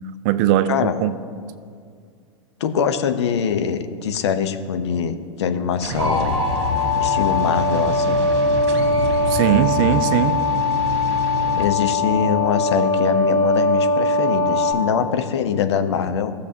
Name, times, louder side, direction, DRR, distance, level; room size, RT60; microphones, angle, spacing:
voice 1, 0.2-1.2 9.3-10.4, right 11 dB, 40° right, 13 dB, 0.5 m, -19 dB
voice 2, 2.6-6.4 7.0-8.2 11.5-16.3, left 7 dB, 60° left, 8 dB, 0.8 m, -23 dB
sound 1, 5.8-11.7, right 1 dB, 60° right, 1.5 m, -28 dB
sound 2, 6.0-14.7, left 3 dB, 20° left, 1.9 m, -21 dB
17.0 x 6.6 x 2.7 m, 2.1 s
figure-of-eight pair, 95°, 16 cm